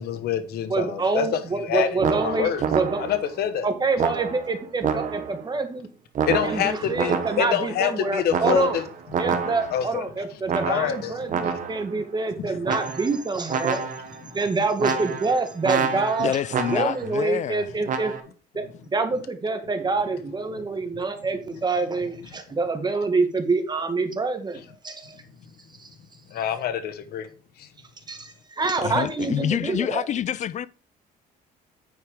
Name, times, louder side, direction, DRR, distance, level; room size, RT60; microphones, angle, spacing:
voice 1, 0.0-1.9 2.2-2.6 3.0-3.7 6.3-8.8 9.7-10.0 10.6-11.1 26.3-27.2, left 9 dB, 70° left, 1.1 m, -26 dB
voice 2, 0.7-3.0 3.6-5.9 6.4-8.8 9.2-13.8 14.3-18.1 18.5-18.6 18.9-25.2 25.8-25.9 28.1-30.1, right 3 dB, 25° right, 1.5 m, -26 dB
sound 1, 2.0-3.3 4.0-5.5 6.2-7.7 8.3-9.9 10.5-11.9 12.6-13.2 13.5-14.2 14.8-17.1 17.9-18.2, right 6 dB, 50° right, 1.2 m, -28 dB
voice 3, 16.2-17.7 28.8-30.7, left 10 dB, 45° left, 0.4 m, -27 dB
9.5 x 4.8 x 5.0 m
cardioid pair, 110°, 17 cm